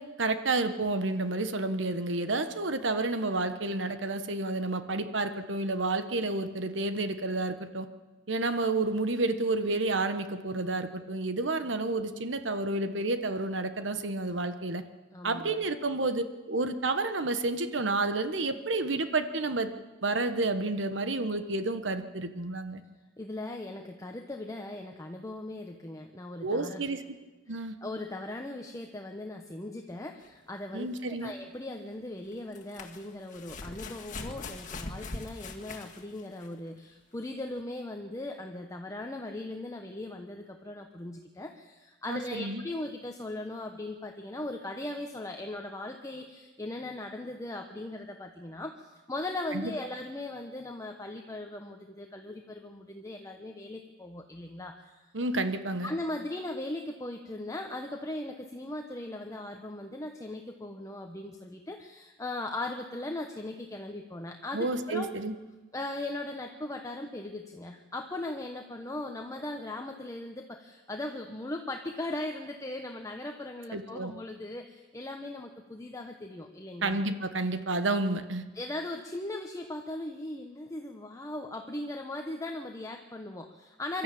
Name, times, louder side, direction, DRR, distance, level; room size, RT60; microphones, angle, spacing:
voice 1, 0.0-7.9 8.3-14.8 15.2-19.7 20.0-22.8 26.4-27.2 27.5-27.7 30.7-31.3 42.1-42.6 49.5-49.7 55.1-55.9 64.5-65.3 73.7-74.1 76.8-78.4, right 2 dB, 75° right, 9 dB, 1.3 m, -30 dB
voice 2, 15.1-15.6 23.2-26.8 27.8-55.0 55.8-65.1 65.7-77.0 78.5-84.0, left 2 dB, 15° left, 3 dB, 1.1 m, -39 dB
sound 1, 30.2-30.3 32.3-36.6 37.6-37.7, left 3 dB, 45° left, 1.9 m, -41 dB
24.0 x 13.0 x 8.6 m, 1.2 s
head